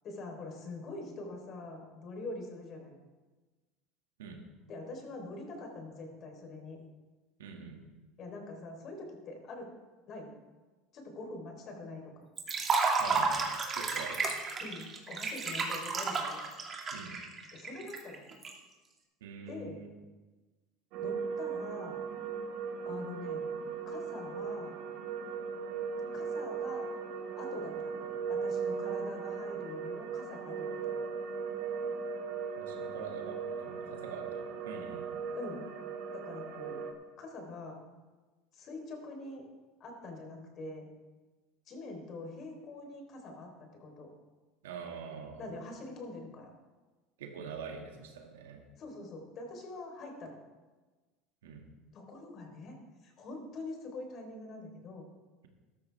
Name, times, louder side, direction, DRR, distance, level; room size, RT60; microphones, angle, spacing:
voice 1, 0.0-3.0 4.7-6.8 8.2-9.7 10.1-10.3 10.9-12.1 14.6-16.4 17.5-18.2 19.5-19.8 21.0-22.0 22.9-23.5 23.9-24.7 26.1-26.9 27.3-31.0 35.3-35.6 36.1-36.8 37.2-37.8 38.5-39.5 39.8-40.9 41.7-43.5 43.8-44.1 45.4-46.5 48.8-50.4 51.9-52.8 53.0-55.0, left 2 dB, 45° left, 2 dB, 3.8 m, -44 dB
voice 2, 7.4-7.8 13.0-14.2 16.9-17.1 19.2-20.0 32.6-33.4 33.6-35.1 44.6-45.5 47.2-48.6 51.4-51.6, right 5 dB, 85° right, 2 dB, 2.0 m, -44 dB
Liquid, 12.4-18.5, right 4 dB, 35° right, 2.3 m, -32 dB
sound 1, 20.9-36.9, right 6 dB, 65° right, 1.7 m, -38 dB
13.5 x 12.5 x 3.5 m, 1.3 s
hypercardioid pair, 90°, 0 cm